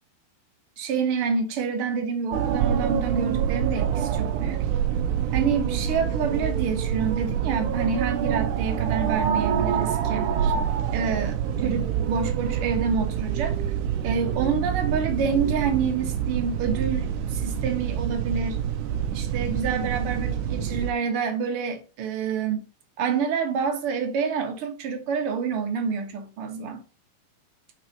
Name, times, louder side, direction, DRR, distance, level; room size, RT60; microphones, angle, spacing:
voice 1, 0.8-4.7 5.3-10.5 10.9-13.6 14.0-18.6 19.1-22.7 23.0-26.8, right 6 dB, 55° right, 1.6 m, -28 dB
sound 1, 2.3-20.9, right 8 dB, 85° right, 1.8 m, -26 dB
6.5 x 5.7 x 5.2 m
omnidirectional pair, 4.5 m